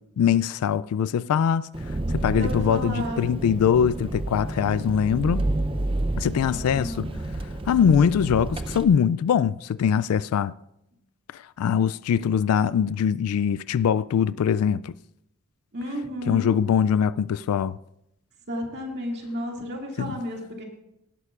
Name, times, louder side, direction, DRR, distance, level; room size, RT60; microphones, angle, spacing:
voice 1, 0.2-1.7 2.1-5.5 6.2-7.1 7.7-10.5 11.3-15.0 16.3-17.8 20.0-20.2, left 7 dB, 90° left, 0.3 m, -22 dB
Engine, 1.7-8.8, right 2 dB, 25° right, 0.5 m, -30 dB
voice 2, 2.3-3.2 6.4-7.3 15.7-16.6 18.5-20.6, left 1 dB, 50° right, 2.3 m, -33 dB
19.0 x 11.0 x 2.4 m
head